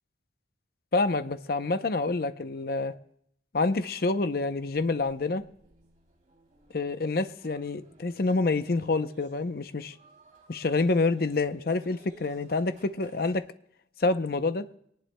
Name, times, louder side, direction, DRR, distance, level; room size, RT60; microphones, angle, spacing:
voice 1, 0.9-2.9 3.5-5.4 6.7-9.9 10.5-13.4 14.0-14.7, left 3 dB, 55° left, 11 dB, 0.6 m, -27 dB
sound 1, 3.7-13.3, right 1 dB, 40° right, 2.9 m, -56 dB
24.0 x 18.5 x 2.2 m, 0.71 s
head